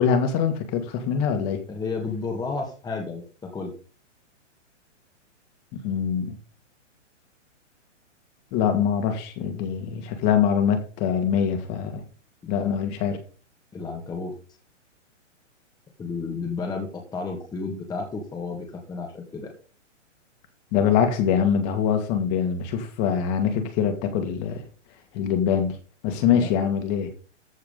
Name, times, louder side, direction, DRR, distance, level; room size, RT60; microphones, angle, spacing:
voice 1, 0.0-1.6 5.7-6.4 8.5-12.0 12.5-13.2 20.7-24.6 25.1-25.8 26.0-27.1, left 7 dB, 35° left, 2.3 m, -23 dB
voice 2, 1.7-3.7 11.4-11.5 12.4-12.8 13.1-13.2 13.7-14.3 16.0-19.5 26.4-26.5 27.0-27.1, left 4 dB, 10° left, 1.8 m, -32 dB
14.0 x 4.8 x 5.3 m
hypercardioid pair, 140°, 37 cm